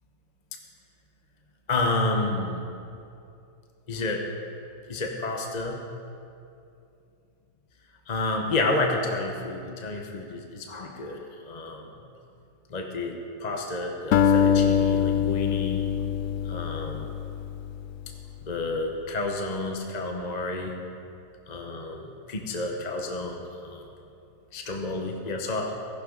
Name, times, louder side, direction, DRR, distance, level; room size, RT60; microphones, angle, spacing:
voice 1, 1.7-2.6 3.9-4.3 4.9-5.8 8.1-11.9 12.7-15.9 16.4-17.1 18.4-20.7 21.5-23.9 24.5-25.7, left 2 dB, 30° left, 2 dB, 0.8 m, -30 dB
Acoustic guitar, 14.1-18.6, left 8 dB, 85° left, 0.7 m, -24 dB
16.5 x 14.5 x 4.0 m, 2.6 s
omnidirectional pair, 1.9 m